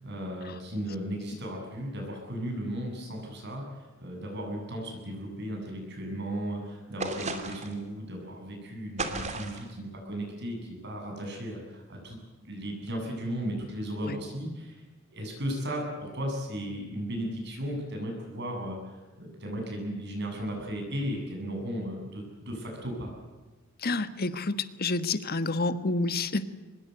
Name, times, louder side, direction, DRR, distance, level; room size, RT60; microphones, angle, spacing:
voice 1, 0.0-3.6 4.0-14.8 15.1-23.1, equal, 55° right, 1 dB, 7.9 m, -35 dB
sound 1, 7.0-7.8 9.0-9.7, right 3 dB, 35° right, 2.7 m, -34 dB
voice 2, 23.8-26.4, left 3 dB, 50° left, 12 dB, 1.4 m, -29 dB
24.5 x 21.0 x 8.0 m, 1.2 s
head